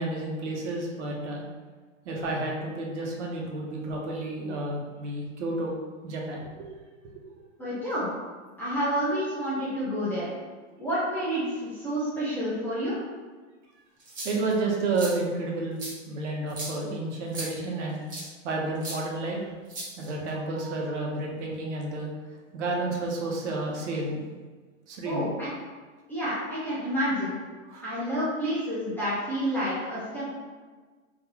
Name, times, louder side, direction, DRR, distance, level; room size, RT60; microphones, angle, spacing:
voice 1, 0.0-1.4 2.0-5.7 6.0-6.5 7.3-7.4 14.2-15.8 16.1-18.0 18.4-19.4 20.0-22.1 22.5-24.2 24.9-25.3 27.7-27.8, right 2 dB, 65° right, -1 dB, 1.0 m, -31 dB
voice 2, 7.6-8.1 8.6-10.3 10.8-13.0 25.0-25.5 26.1-27.4 27.8-30.3, equal, 5° left, -11 dB, 0.3 m, -29 dB
sound 1, 14.0-14.5 14.9-15.1 15.8-15.9 16.5-16.7 17.3-17.5 18.1-18.3 18.8-19.0 19.7-20.3, right 1 dB, 20° right, 0.9 m, -36 dB
3.9 x 2.6 x 3.0 m, 1.4 s
hypercardioid pair, 130°, 39 cm